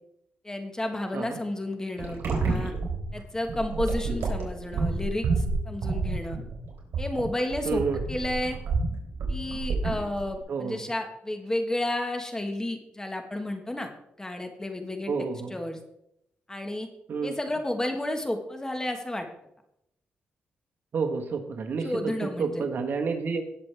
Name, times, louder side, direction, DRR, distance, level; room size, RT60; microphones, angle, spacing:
voice 1, 0.4-2.7 3.1-6.4 7.0-8.6 9.3-13.9 14.2-15.1 15.5-15.8 16.5-16.9 17.2-19.3 21.8-22.6, left 1 dB, 15° left, 5 dB, 1.5 m, -31 dB
sound 1, 2.0-10.4, right 3 dB, 75° right, 3.9 m, -29 dB
voice 2, 7.6-8.0 10.5-10.9 15.1-15.6 17.1-17.3 20.9-22.1 22.4-23.4, right 5 dB, 55° right, 5 dB, 1.5 m, -29 dB
18.5 x 6.7 x 3.4 m, 0.79 s
cardioid pair, 90°, 4 cm